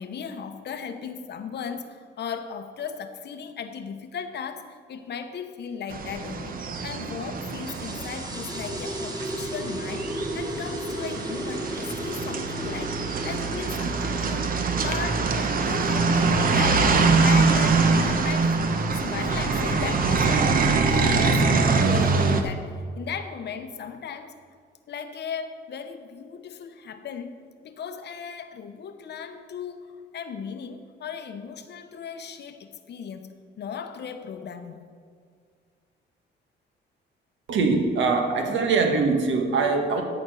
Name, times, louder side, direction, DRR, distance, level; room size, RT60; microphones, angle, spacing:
voice 1, 0.0-18.6 18.9-21.5 21.8-24.3 24.9-27.4 27.6-34.8, left 7 dB, 60° left, 9 dB, 0.8 m, -37 dB
Thailand motorcycles and cars passby cu side street, 5.9-22.4, right 4 dB, 45° right, 0.9 m, -24 dB
sound 1, 7.5-18.6, right 1 dB, 20° right, 1.2 m, -36 dB
voice 2, 37.5-40.0, right 4 dB, 70° right, 4 dB, 1.4 m, -22 dB
13.0 x 4.3 x 6.3 m, 2.1 s
cardioid pair, 90°, 20 cm